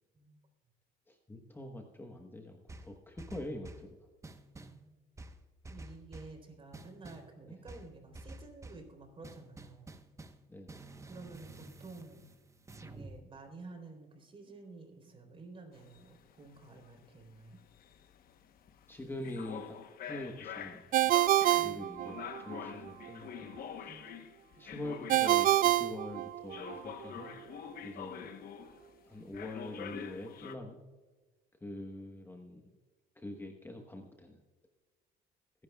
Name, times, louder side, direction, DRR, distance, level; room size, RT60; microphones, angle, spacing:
voice 1, 1.1-3.9 10.5-10.9 18.9-21.2 21.5-24.0 24.6-27.3 27.8-28.3 29.1-30.8 31.6-32.7 33.2-34.4, left 1 dB, 10° left, 3 dB, 1.2 m, -44 dB
sound 1, 2.7-3.9 4.2-4.8 5.2-6.4 6.7-7.3 7.7-8.9 9.2-10.4 10.7-13.2, right 2 dB, 15° right, 1.0 m, -50 dB
voice 2, 4.7-5.0 5.7-9.9 11.1-12.2 12.8-17.6 21.5-22.2 23.9-24.1, right 3 dB, 30° right, 4 dB, 3.7 m, -51 dB
sound 2, 15.7-25.9 26.5-29.0 29.3-30.5, left 8 dB, 60° left, 1.1 m, -46 dB
Ringtone, 20.9-22.6 25.1-26.8, right 14 dB, 55° right, 0.4 m, -27 dB
22.0 x 11.0 x 2.3 m, 1.4 s
cardioid pair, 110°, 17 cm